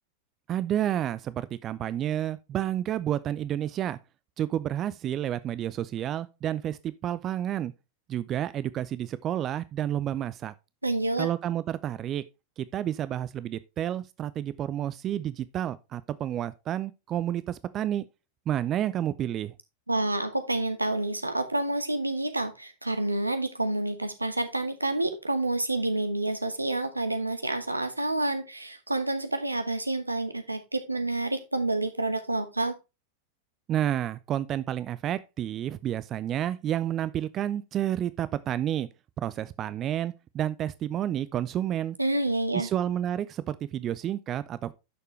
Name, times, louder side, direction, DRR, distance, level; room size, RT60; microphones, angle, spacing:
voice 1, 0.5-4.0 4.4-7.7 8.1-10.5 11.2-12.2 12.6-18.1 18.5-19.5 33.7-38.9 39.2-42.0 42.5-44.7, right 11 dB, 30° right, 0.5 m, -30 dB
voice 2, 10.8-11.3 19.9-32.7 42.0-42.7, right 2 dB, 85° right, 1.3 m, -28 dB
11.0 x 6.7 x 3.3 m
figure-of-eight pair, 90°, 0 cm